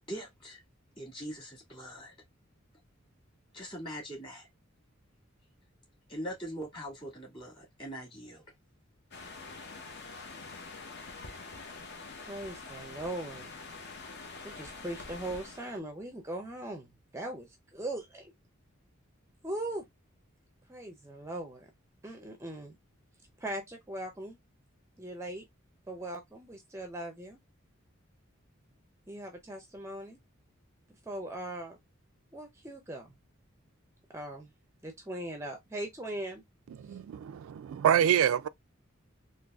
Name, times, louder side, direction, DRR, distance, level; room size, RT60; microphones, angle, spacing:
voice 1, 0.1-0.6 1.0-2.1 3.5-4.5 6.1-8.4, equal, 25° left, 1.9 m, -42 dB
sound 1, 9.1-15.8, left 3 dB, 55° left, 0.8 m, -45 dB
voice 2, 12.2-13.5 14.4-18.2 19.4-19.8 20.7-21.7 22.0-22.8 23.4-24.4 25.0-25.4 25.9-27.4 29.1-30.2 31.1-31.8 32.3-33.1 34.1-34.5 34.8-36.4, right 1 dB, 15° right, 0.5 m, -39 dB
voice 3, 36.8-38.5, right 9 dB, 90° right, 0.3 m, -26 dB
3.9 x 2.6 x 2.3 m
head